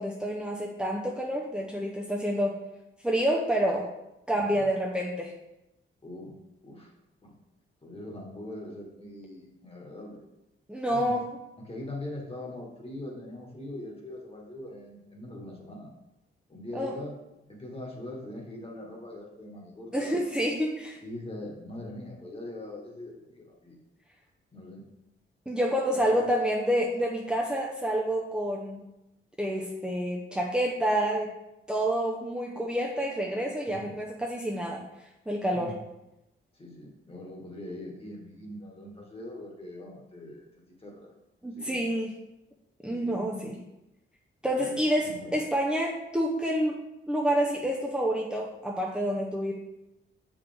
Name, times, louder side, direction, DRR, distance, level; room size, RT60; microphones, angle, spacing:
voice 1, 0.0-2.6 3.0-3.9 4.3-5.3 10.7-11.3 16.7-17.0 19.9-21.0 25.5-28.8 29.4-31.3 31.7-34.8 35.3-35.7 41.4-42.1 42.8-43.6 44.4-46.8 47.1-49.5, equal, 5° right, -2 dB, 0.7 m, -28 dB
voice 2, 4.3-4.6 6.0-6.3 6.6-6.9 7.2-7.3 7.8-10.2 10.9-11.1 11.6-15.9 16.5-17.1 17.5-20.1 21.0-23.8 24.5-24.8 26.1-26.2 33.7-33.9 35.5-35.8 36.5-41.1 41.5-41.8 42.9-43.5 44.5-45.4, left 1 dB, 25° left, -1 dB, 1.7 m, -42 dB
6.8 x 5.1 x 3.5 m, 0.93 s
cardioid pair, 105°, 21 cm